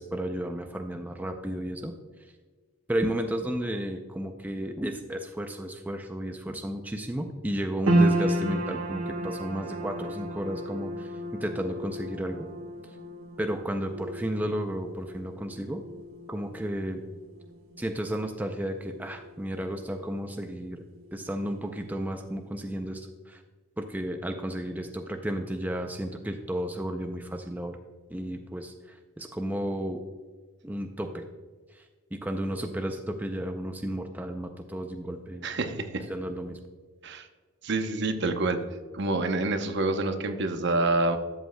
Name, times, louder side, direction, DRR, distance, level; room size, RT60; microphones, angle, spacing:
voice 1, 0.0-1.9 2.9-12.5 12.8-13.0 13.4-15.8 16.3-17.0 17.8-20.8 21.1-23.4 23.8-27.8 28.1-30.0 30.6-31.2 31.7-35.5 36.1-36.6, right 1 dB, 10° right, 5 dB, 0.4 m, -33 dB
sound 1, 7.9-20.3 20.5-21.5 21.9-22.0, right 1 dB, 80° right, 1.3 m, -32 dB
voice 2, 35.4-36.0 37.0-37.3 37.6-38.6 38.9-41.2, right 2 dB, 55° right, 8 dB, 0.7 m, -27 dB
12.5 x 7.9 x 2.2 m, 1.5 s
head